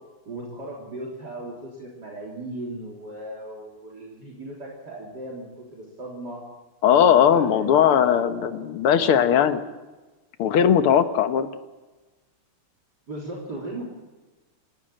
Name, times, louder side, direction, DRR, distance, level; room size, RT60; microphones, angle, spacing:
voice 1, 0.3-6.4 7.0-9.1 13.1-13.8, right 1 dB, 50° right, -3 dB, 4.2 m, -37 dB
voice 2, 6.8-9.6 10.4-11.5, left 8 dB, 80° left, 9 dB, 2.1 m, -19 dB
28.5 x 12.0 x 8.9 m, 1.2 s
omnidirectional pair, 2.4 m